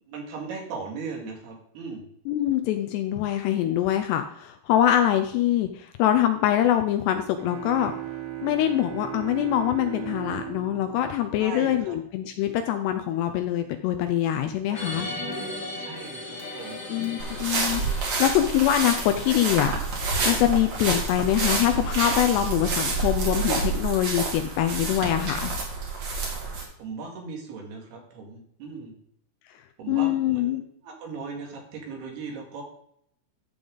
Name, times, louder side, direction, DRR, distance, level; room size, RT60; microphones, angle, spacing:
voice 1, 0.1-2.0 11.4-12.0 14.4-15.4 15.8-17.3 26.8-29.0 29.8-30.6 30.8-32.6, right 4 dB, 70° right, 0 dB, 3.9 m, -38 dB
voice 2, 2.3-7.9 8.4-15.1 16.9-19.7 20.3-25.5 29.9-30.6, left 11 dB, 80° left, 7 dB, 2.7 m, -24 dB
sound 1, 7.4-12.1, right 13 dB, 85° right, 1.5 m, -37 dB
sound 2, 14.8-20.5, left 1 dB, 45° left, 1.2 m, -38 dB
sound 3, 17.2-26.6, right 3 dB, 45° right, 3.0 m, -28 dB
14.0 x 5.4 x 3.9 m, 0.68 s
omnidirectional pair, 5.0 m